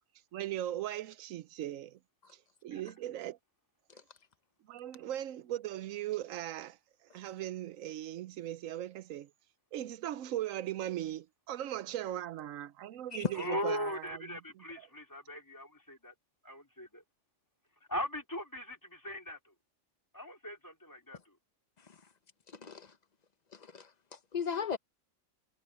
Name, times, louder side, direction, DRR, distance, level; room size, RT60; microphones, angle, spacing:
voice 1, 0.3-2.0 2.3-3.4 4.6-9.3 9.7-14.9, right 13 dB, 85° right, 1.0 m, -39 dB
voice 2, 13.3-15.7 16.5-17.0 17.9-19.4 20.1-21.3, equal, 15° left, 3.2 m, -39 dB
voice 3, 22.5-22.9 23.5-24.8, left 6 dB, 35° left, 0.9 m, -37 dB
omnidirectional pair, 1.4 m